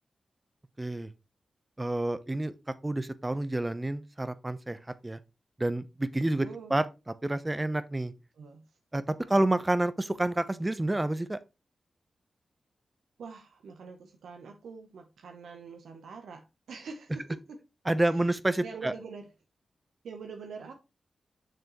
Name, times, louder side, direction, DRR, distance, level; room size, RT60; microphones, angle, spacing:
voice 1, 0.8-1.1 1.8-2.5 2.8-5.2 5.6-6.8 7.2-8.1 8.9-11.4 17.9-18.9, right 1 dB, 25° right, 0.8 m, -29 dB
voice 2, 6.3-6.8 8.3-8.7 9.2-9.4 13.2-17.6 18.0-18.3 18.6-19.3 20.0-20.7, right 5 dB, 85° right, 0.9 m, -44 dB
6.7 x 6.5 x 3.1 m
cardioid pair, 40°, 0 cm